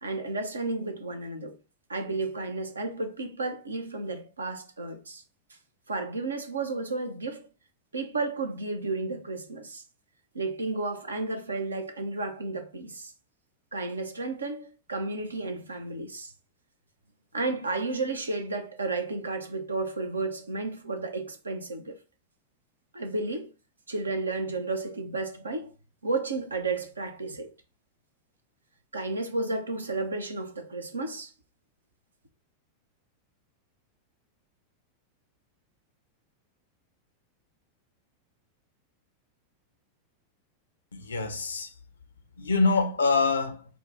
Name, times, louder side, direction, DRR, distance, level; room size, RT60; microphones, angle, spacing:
voice 1, 0.0-1.6 1.9-5.2 5.9-7.5 7.9-9.8 10.3-13.1 13.7-16.3 17.3-22.0 22.9-23.5 23.9-25.7 26.0-27.5 28.9-31.3, right 3 dB, 75° right, 0.8 m, -32 dB
voice 2, 40.9-41.7 42.4-43.6, left 4 dB, 75° left, 0.6 m, -25 dB
4.8 x 2.4 x 3.9 m
figure-of-eight pair, 90°, 0 cm